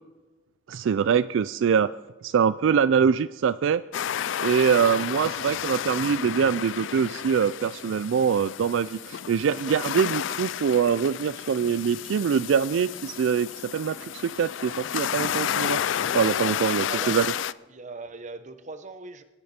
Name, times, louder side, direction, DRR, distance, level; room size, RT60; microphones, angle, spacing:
voice 1, 0.7-1.9 2.2-3.8 4.4-15.8 16.1-17.3, right 7 dB, 75° right, 15 dB, 0.3 m, -24 dB
sound 1, 3.9-17.5, left 9 dB, 70° left, 0.4 m, -31 dB
voice 2, 16.5-17.2 17.7-19.2, right 3 dB, 40° right, 10 dB, 1.0 m, -39 dB
22.5 x 10.0 x 4.3 m, 1.2 s
head